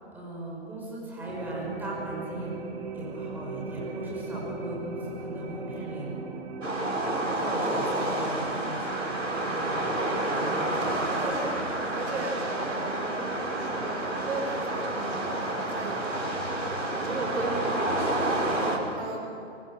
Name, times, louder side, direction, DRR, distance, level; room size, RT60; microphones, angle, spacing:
voice 1, 0.1-2.6 2.9-6.2 7.3-8.9, right 1 dB, 5° right, -5 dB, 6.0 m, -38 dB
sound 1, 1.3-16.1, right 3 dB, 35° right, 4.0 m, -39 dB
sound 2, 6.6-18.8, right 1 dB, 90° right, 4.8 m, -29 dB
voice 2, 10.8-13.2 13.5-16.3 16.9-19.3, right 3 dB, 60° right, 1 dB, 5.9 m, -36 dB
24.5 x 23.5 x 6.4 m, 2.6 s
figure-of-eight pair, 135°, 37 cm